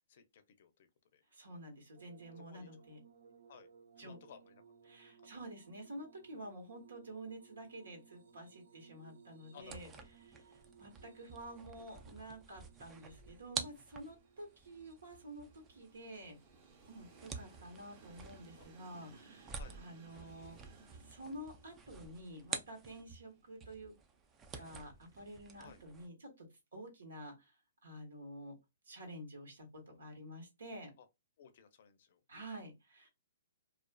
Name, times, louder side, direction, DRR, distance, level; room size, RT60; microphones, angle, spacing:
voice 1, 0.1-1.2 2.4-2.7 3.5-3.7 4.0-4.6 5.2-5.3 9.5-10.1 18.6-18.7 19.6-19.8 25.6-25.8 31.0-31.1 31.4-32.2, left 8 dB, 55° left, 0.5 m, -58 dB
voice 2, 1.3-3.0 4.0-4.2 4.9-9.9 10.4-16.4 16.9-20.7 21.0-23.9 24.6-26.5 26.7-27.5 27.8-28.5 28.9-30.9 32.3-33.1, right 1 dB, 85° right, 1.2 m, -50 dB
sound 1, 1.9-17.2 18.1-18.8 20.2-20.3, right 6 dB, 65° right, 0.6 m, -63 dB
sound 2, 9.6-23.3 23.6-26.1, right 5 dB, 15° right, 0.3 m, -49 dB
Train, 12.3-25.3, right 4 dB, 30° right, 0.7 m, -64 dB
2.4 x 2.3 x 2.2 m
hypercardioid pair, 150°, 0 cm